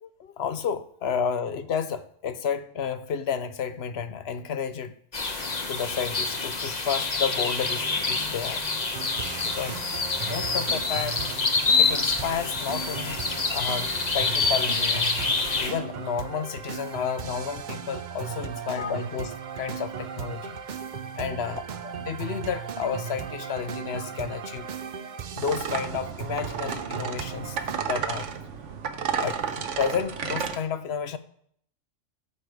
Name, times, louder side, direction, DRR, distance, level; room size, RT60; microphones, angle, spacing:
voice 1, 0.0-4.9 5.7-8.7 9.4-9.8 10.3-11.4 11.8-13.2 13.5-15.1 15.6-20.6 21.2-24.7 25.4-28.3 29.2-31.2, left 7 dB, 60° left, 0.8 m, -31 dB
sound 1, 5.1-15.7, left 4 dB, 35° left, 1.1 m, -27 dB
sound 2, 8.9-27.8, right 8 dB, 50° right, 0.6 m, -37 dB
sound 3, 25.4-30.6, right 7 dB, 70° right, 1.2 m, -32 dB
12.5 x 6.5 x 4.8 m
omnidirectional pair, 1.3 m